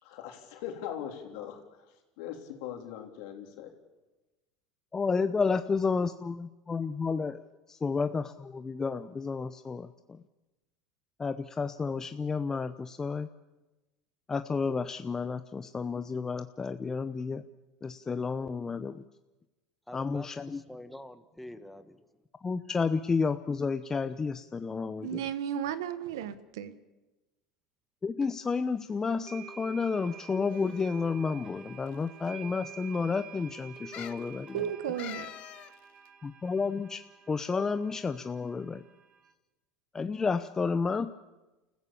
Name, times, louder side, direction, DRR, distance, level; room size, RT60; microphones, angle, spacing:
voice 1, 0.0-3.7, left 10 dB, 70° left, 3 dB, 3.6 m, -41 dB
voice 2, 4.9-10.2 11.2-13.3 14.3-17.4 17.8-19.0 19.9-20.6 22.4-25.2 28.0-34.7 36.2-37.0 37.3-38.8 39.9-41.1, left 4 dB, 25° left, 10 dB, 0.7 m, -31 dB
voice 3, 19.9-22.2, left 1 dB, 5° left, 10 dB, 1.5 m, -47 dB
voice 4, 25.0-26.7 34.5-35.3, right 9 dB, 85° right, 14 dB, 1.2 m, -34 dB
sound 1, 28.2-28.3 29.3-39.3, right 7 dB, 30° right, 2.3 m, -49 dB
sound 2, 30.5-31.0 31.9-32.0 32.2-32.3 33.9-34.3 35.0-35.7 36.0-36.1, left 14 dB, 55° left, 0.9 m, -44 dB
29.0 x 15.0 x 7.1 m, 1.1 s
hypercardioid pair, 90°, 2 cm